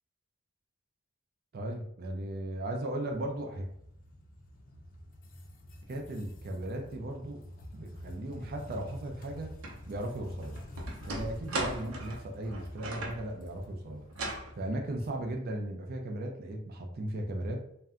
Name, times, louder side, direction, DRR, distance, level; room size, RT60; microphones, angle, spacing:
voice 1, 1.5-3.7 5.9-7.4 7.7-9.5 9.8-10.5 11.1-14.0 14.5-17.6, right 1 dB, 45° right, 2 dB, 0.4 m, -36 dB
sound 1, 3.0-15.4, equal, 40° left, 0.5 m, -47 dB
sound 2, 9.6-9.8 10.2-13.3 14.1-14.5, right 2 dB, 85° right, 0.7 m, -37 dB
2.6 x 2.2 x 3.5 m, 0.74 s
head